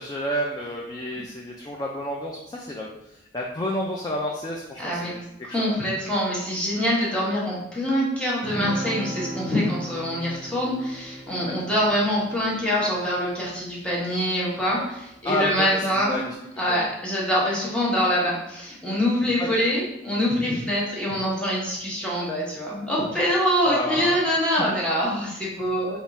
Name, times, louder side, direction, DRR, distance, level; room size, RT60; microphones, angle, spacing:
voice 1, 0.0-5.2 5.5-5.7 11.5-11.6 15.2-16.3 16.7-16.9 19.4-19.6 23.6-24.2, left 1 dB, 20° left, -2 dB, 0.3 m, -30 dB
voice 2, 4.8-5.1 5.4-26.0, equal, 5° left, -6 dB, 0.9 m, -25 dB
sound 1, 8.4-14.1, right 1 dB, 45° right, 0.8 m, -36 dB
3.4 x 2.4 x 4.0 m, 0.85 s
head